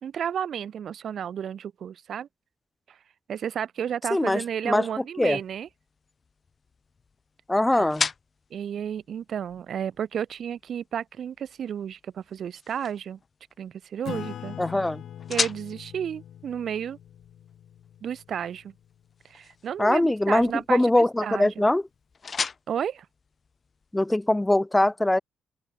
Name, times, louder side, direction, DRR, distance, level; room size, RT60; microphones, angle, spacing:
voice 1, 0.0-2.3 2.9-3.0 3.3-5.7 7.8-7.9 8.5-13.2 13.6-14.6 15.3-17.0 18.0-18.7 19.3-21.6 22.7-23.1, right 8 dB, 60° right, 1.1 m, -32 dB
voice 2, 4.1-4.8 5.2-5.4 7.5-8.1 14.6-15.0 19.8-21.8 23.9-25.2, left 1 dB, 10° left, 0.9 m, -22 dB
sound 1, 5.2-24.1, left 5 dB, 35° left, 2.8 m, -39 dB
Acoustic guitar / Strum, 14.0-19.0, left 10 dB, 70° left, 6.0 m, -42 dB
open air
cardioid pair, 90°, 0 cm